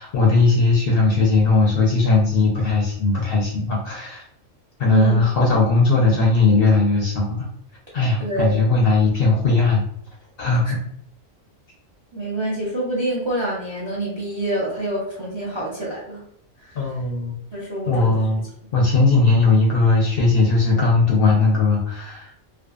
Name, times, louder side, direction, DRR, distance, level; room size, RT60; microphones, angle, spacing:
voice 1, 0.0-4.2 4.8-7.5 7.9-9.8 10.4-10.8 16.8-17.4 17.9-18.4 18.7-22.3, left 3 dB, 60° left, -3 dB, 0.6 m, -18 dB
voice 2, 4.9-5.2 8.2-8.6 10.6-10.7 12.1-16.2 16.6-16.9 17.5-18.5, right 1 dB, 35° right, -5 dB, 0.5 m, -26 dB
2.5 x 2.2 x 2.3 m, 0.70 s
omnidirectional pair, 1.3 m